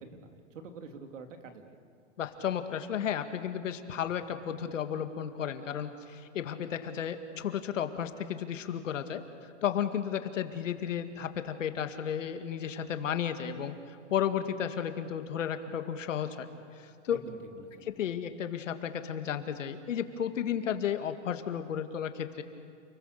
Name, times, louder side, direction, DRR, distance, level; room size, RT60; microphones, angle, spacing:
voice 1, 0.0-1.8 17.1-17.9, right 4 dB, 80° right, 6 dB, 2.8 m, -47 dB
voice 2, 2.2-9.2 9.6-16.5 16.8-17.2 17.9-22.4, left 9 dB, 85° left, 8 dB, 2.1 m, -33 dB
29.5 x 22.0 x 6.7 m, 2.4 s
supercardioid pair, 175°, 37 cm